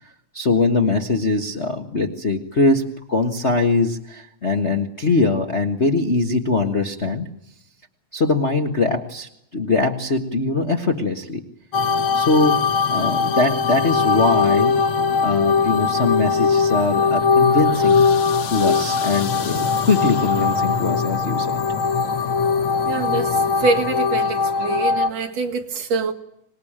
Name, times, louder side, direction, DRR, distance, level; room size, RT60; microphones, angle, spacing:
voice 1, 0.3-7.3 8.1-11.4 12.1-14.8 15.2-18.0 18.5-21.6, left 3 dB, 35° left, 3 dB, 1.2 m, -22 dB
sound 1, 11.7-25.1, left 5 dB, 50° left, 1.9 m, -20 dB
voice 2, 22.9-26.1, right 4 dB, 60° right, 5 dB, 2.9 m, -24 dB
25.5 x 20.5 x 8.8 m, 0.78 s
omnidirectional pair, 3.4 m